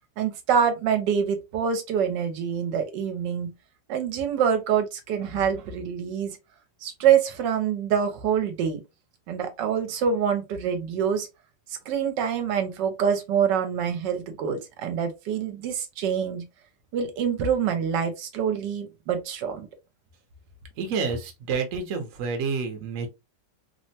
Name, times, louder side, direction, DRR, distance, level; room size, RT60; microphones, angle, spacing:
voice 1, 0.2-3.5 3.9-6.4 6.8-8.8 9.3-11.3 11.9-16.4 16.9-19.7, right 7 dB, 75° right, 1.2 m, -25 dB
voice 2, 20.8-23.1, right 5 dB, 60° right, 0.9 m, -29 dB
3.3 x 2.1 x 2.6 m
omnidirectional pair, 2.0 m